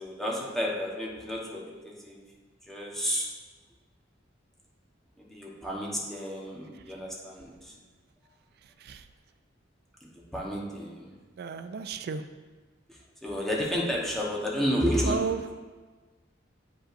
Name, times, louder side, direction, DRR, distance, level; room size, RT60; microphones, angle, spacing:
voice 1, 0.0-2.2 2.7-3.3 5.2-7.7 10.0-11.1 12.9-15.5, equal, ahead, -4 dB, 1.0 m, -31 dB
voice 2, 11.4-12.2 15.1-15.5, right 5 dB, 55° right, 10 dB, 0.3 m, -32 dB
8.5 x 5.3 x 2.5 m, 1.4 s
head